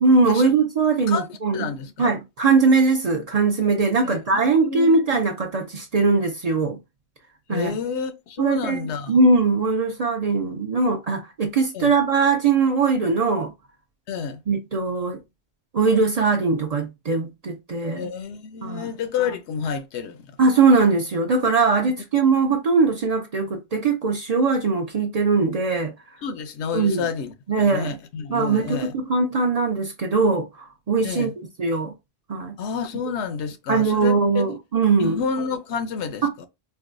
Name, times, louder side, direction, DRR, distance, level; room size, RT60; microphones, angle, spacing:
voice 1, 0.0-1.7 2.0-6.8 7.5-7.8 8.4-13.5 14.5-15.2 15.7-18.1 18.6-18.9 20.4-25.9 26.7-27.1 27.5-28.0 28.3-31.3 31.6-31.9 32.3-32.6 33.7-35.2 36.2-36.3, right 4 dB, 50° right, 0.5 m, -21 dB
voice 2, 1.5-2.1 4.0-5.0 7.5-9.1 11.7-11.9 14.1-14.4 18.0-20.4 22.5-22.6 26.2-28.9 31.0-31.3 32.6-34.5 35.0-36.5, left 6 dB, 85° left, 0.9 m, -29 dB
4.5 x 2.2 x 2.5 m
omnidirectional pair, 1.1 m